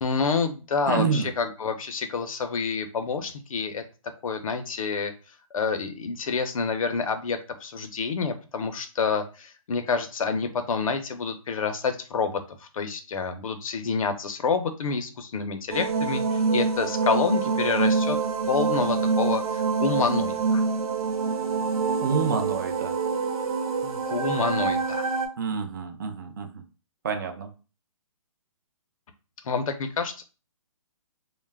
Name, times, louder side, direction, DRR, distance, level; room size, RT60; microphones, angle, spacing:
voice 1, 0.0-3.8 4.2-5.1 5.5-18.2 18.5-20.6 23.8-25.1 29.4-30.2, left 5 dB, 70° left, 8 dB, 0.5 m, -28 dB
voice 2, 0.9-1.3 22.0-22.9 25.4-26.6 27.0-27.5, right 5 dB, 35° right, 5 dB, 0.4 m, -28 dB
sound 1, 15.7-25.3, right 5 dB, 90° right, 0.7 m, -26 dB
2.2 x 2.0 x 3.3 m, 0.34 s
hypercardioid pair, 160°, 18 cm